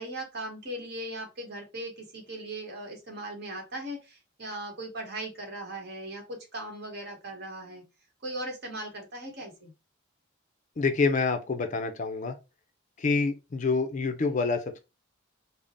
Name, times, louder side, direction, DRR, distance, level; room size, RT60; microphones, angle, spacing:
voice 1, 0.0-7.8 8.2-9.7, right 1 dB, 55° right, 1.2 m, -38 dB
voice 2, 10.8-12.4 13.0-14.8, left 4 dB, 35° left, 0.4 m, -27 dB
3.6 x 2.0 x 3.7 m
head